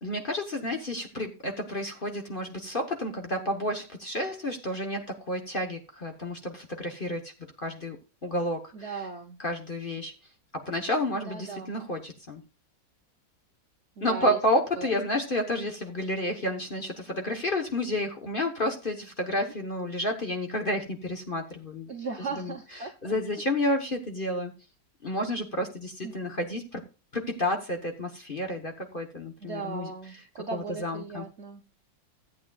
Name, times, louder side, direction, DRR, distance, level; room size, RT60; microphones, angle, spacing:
voice 1, 0.0-7.3 7.6-8.0 8.2-8.9 9.4-10.1 10.5-12.4 14.0-21.9 22.4-22.5 23.0-24.5 25.0-26.8 27.1-29.9 30.5-31.2, left 1 dB, 35° left, 4 dB, 1.0 m, -30 dB
voice 2, 8.7-9.4 11.3-11.7 14.0-14.4 14.8-14.9 21.9-23.1 26.0-26.2 29.4-31.6, right 4 dB, 55° right, 5 dB, 0.8 m, -37 dB
14.5 x 8.4 x 2.3 m, 0.31 s
omnidirectional pair, 2.0 m